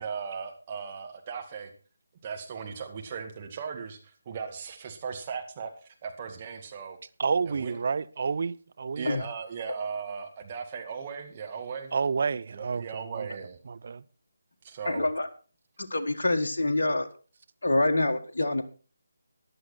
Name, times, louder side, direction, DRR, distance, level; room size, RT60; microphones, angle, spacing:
voice 1, 0.0-1.7 2.2-7.0 7.5-7.8 9.0-11.9 12.5-13.6 14.6-15.1, right 6 dB, 30° right, 1.9 m, -37 dB
voice 2, 7.2-9.1 11.9-14.0, right 5 dB, 45° right, 0.7 m, -30 dB
voice 3, 14.9-15.3 15.8-17.1 17.6-18.6, left 2 dB, 60° left, 1.6 m, -26 dB
14.5 x 11.0 x 4.3 m
figure-of-eight pair, 150°, 0 cm